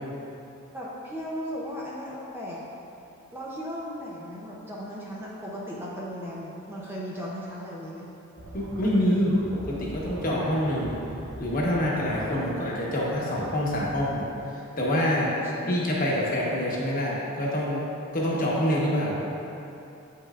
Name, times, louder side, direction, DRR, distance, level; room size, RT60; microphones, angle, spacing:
voice 1, 0.7-2.7 3.3-8.1 15.1-15.8, equal, 10° right, -5 dB, 0.6 m, -36 dB
sound 1, 8.4-14.1, right 1 dB, 75° right, 0.8 m, -42 dB
voice 2, 8.5-11.0 11.4-14.2 14.8-15.3 15.7-17.9 18.1-19.2, equal, 40° left, -5 dB, 1.1 m, -26 dB
8.5 x 5.6 x 2.4 m, 2.9 s
head